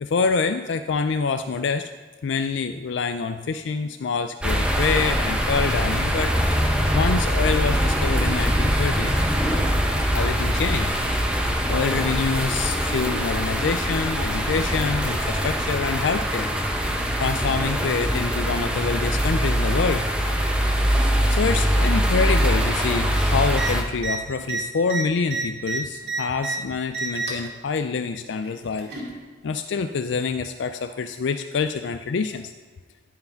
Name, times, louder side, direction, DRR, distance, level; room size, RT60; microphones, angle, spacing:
voice 1, 0.0-1.9 2.2-6.4 6.9-9.2 10.1-10.9 11.7-16.5 17.2-20.0 21.3-28.9 29.4-32.5, left 5 dB, 70° left, 9 dB, 0.4 m, -26 dB
sound 1, 4.4-23.8, equal, 5° right, 0.9 m, -23 dB
sound 2, 23.5-23.7 24.0-24.2 24.4-26.6 26.9-27.5 28.4-29.1 30.2-30.3, right 4 dB, 55° right, 2.3 m, -29 dB
13.0 x 4.8 x 5.7 m, 1.4 s
head